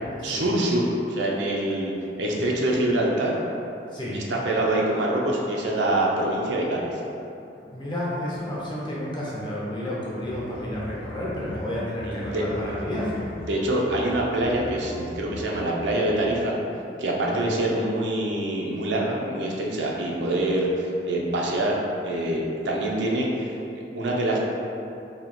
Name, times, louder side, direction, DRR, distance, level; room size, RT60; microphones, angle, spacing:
voice 1, 0.2-1.9 2.2-3.3 4.1-6.9 12.0-12.4 13.4-16.6 17.0-23.5 23.9-24.4, right 1 dB, 80° right, -2 dB, 0.6 m, -25 dB
voice 2, 7.7-13.3 17.3-17.4, left 1 dB, 25° left, -7 dB, 0.8 m, -31 dB
sound 1, 10.2-16.0, left 1 dB, 70° left, 0.4 m, -41 dB
2.8 x 2.7 x 4.3 m, 2.8 s
head